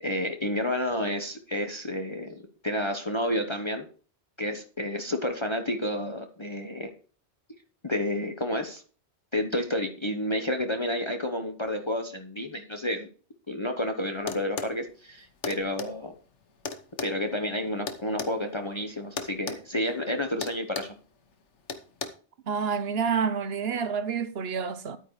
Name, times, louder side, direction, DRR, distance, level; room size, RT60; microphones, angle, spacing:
voice 1, 0.0-3.8 4.4-6.9 7.8-8.8 9.3-13.1 13.5-16.1 17.0-20.9, left 1 dB, 25° left, 1.0 m, -30 dB
sound 1, 14.3-14.8 15.4-15.9 16.6-18.3 19.2-19.6 19.9-20.1 20.4-21.0 21.7-22.1, left 5 dB, 90° left, 1.4 m, -34 dB
voice 2, 22.5-25.0, right 6 dB, 65° right, 1.1 m, -28 dB
12.0 x 9.1 x 3.2 m
omnidirectional pair, 1.2 m